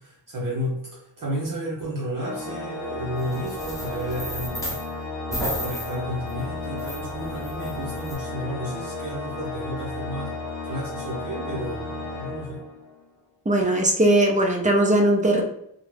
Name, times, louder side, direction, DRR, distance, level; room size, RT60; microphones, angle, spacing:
voice 1, 0.0-4.8 5.3-10.3 10.6-12.6, equal, 55° right, -5 dB, 0.7 m, -32 dB
Organ, 2.2-13.1, left 2 dB, 85° left, 0.6 m, -34 dB
sound 1, 3.2-4.9 5.3-8.2, equal, 10° left, 0.8 m, -34 dB
voice 2, 13.5-15.4, right 1 dB, 20° right, 1 dB, 0.4 m, -19 dB
2.3 x 2.1 x 3.1 m, 0.76 s
wide cardioid pair, 125°, 38 cm